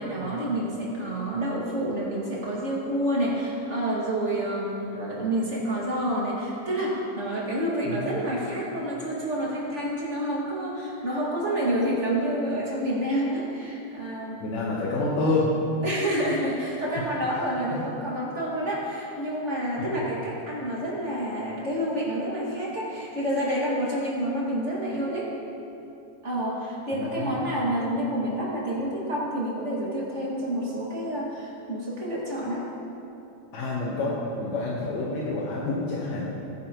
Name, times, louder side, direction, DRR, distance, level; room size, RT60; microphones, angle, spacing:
voice 1, 0.0-14.8 15.8-25.3 26.2-32.7, right 1 dB, 25° right, -6 dB, 1.8 m, -28 dB
voice 2, 7.9-8.2 14.4-15.5 17.0-17.1 19.8-20.0 26.9-27.4 33.5-36.3, left 2 dB, 60° left, -6 dB, 2.2 m, -28 dB
20.0 x 10.0 x 3.1 m, 2.8 s
omnidirectional pair, 4.0 m